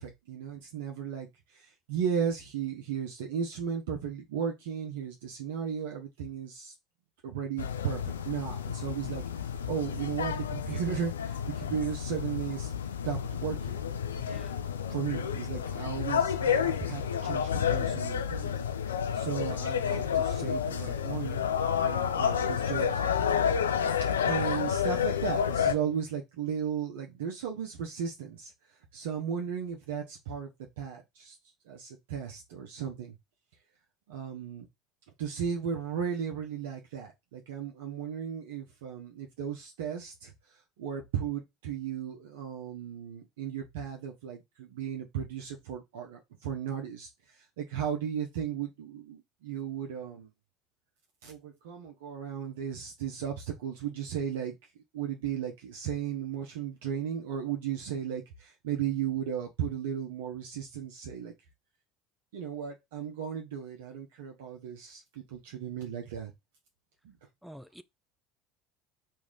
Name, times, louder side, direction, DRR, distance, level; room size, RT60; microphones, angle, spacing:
voice 1, 0.0-6.7 7.2-9.2 9.7-12.7 13.0-13.8 14.9-18.6 19.1-21.4 21.8-23.0 24.3-28.5 28.9-30.5 30.8-31.4 31.7-33.2 34.1-34.7 35.2-40.3 40.8-47.1 47.6-50.3 51.2-54.6 54.9-61.3 62.3-66.3 67.0-67.1, right 8 dB, 70° right, 0.8 m, -35 dB
sound 1, 7.6-25.7, left 7 dB, 85° left, 0.4 m, -30 dB
voice 2, 14.2-14.6 67.4-67.8, equal, ahead, 0.4 m, -48 dB
3.1 x 2.7 x 3.7 m
hypercardioid pair, 70°, 0 cm